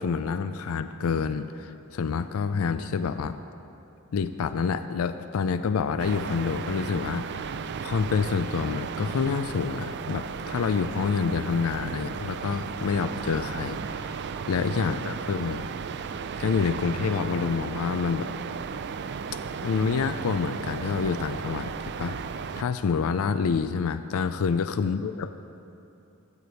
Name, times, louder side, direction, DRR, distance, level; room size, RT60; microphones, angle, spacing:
voice 1, 0.0-3.4 4.1-7.5 7.8-14.2 14.5-15.7 16.4-18.3 19.6-21.7 22.0-22.2 22.6-25.3, left 5 dB, 85° left, 11 dB, 0.4 m, -27 dB
sound 1, 6.0-22.6, right 6 dB, 55° right, 0.4 m, -35 dB
13.0 x 5.0 x 8.1 m, 2.7 s
head